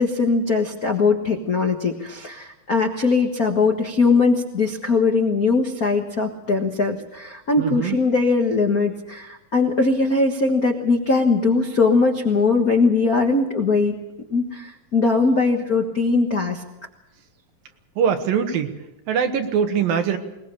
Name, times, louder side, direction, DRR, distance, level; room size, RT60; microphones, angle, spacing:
voice 1, 0.0-13.9 14.3-16.6, left 4 dB, 65° left, 3 dB, 0.8 m, -20 dB
voice 2, 7.6-8.0 18.0-18.7 19.1-20.2, right 7 dB, 75° right, 6 dB, 3.2 m, -22 dB
21.5 x 20.0 x 6.9 m, 0.95 s
omnidirectional pair, 4.1 m